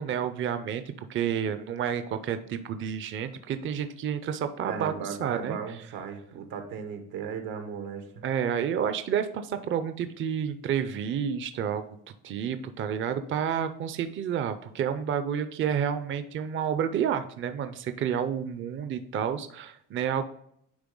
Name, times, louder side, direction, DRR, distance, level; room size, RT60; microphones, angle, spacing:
voice 1, 0.0-5.6 8.2-11.8 12.2-20.2, right 8 dB, 40° right, 10 dB, 0.5 m, -30 dB
voice 2, 4.6-8.2, right 6 dB, 90° right, 6 dB, 1.2 m, -37 dB
9.6 x 3.3 x 3.8 m, 0.72 s
cardioid pair, 115°, 32 cm